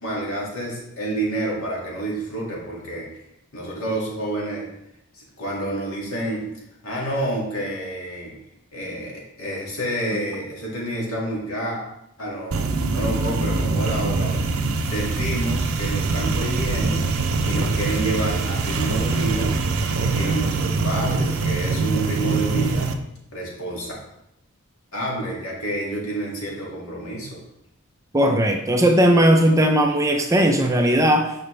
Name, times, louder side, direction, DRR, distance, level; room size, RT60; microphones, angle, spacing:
voice 1, 0.0-3.2 3.5-4.7 5.1-8.4 8.7-11.8 12.2-14.5 14.8-19.6 20.0-23.0 23.3-23.9 24.9-27.4, right 1 dB, 70° left, -3 dB, 2.1 m, -29 dB
sound 1, 12.5-22.9, right 3 dB, 65° right, 0.6 m, -23 dB
voice 2, 28.1-31.3, right 1 dB, 15° right, 4 dB, 0.4 m, -17 dB
6.9 x 5.0 x 3.3 m, 0.82 s
head